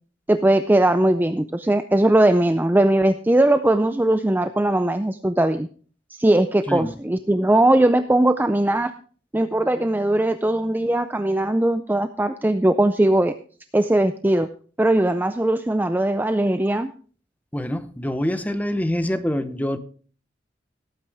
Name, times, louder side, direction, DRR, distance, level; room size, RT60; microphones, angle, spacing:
voice 1, 0.3-5.7 6.1-8.9 9.3-13.3 13.7-14.5 14.8-16.9, right 1 dB, 10° right, 0.4 m, -19 dB
voice 2, 17.5-19.8, equal, 10° left, 0.8 m, -25 dB
17.5 x 8.7 x 3.4 m
head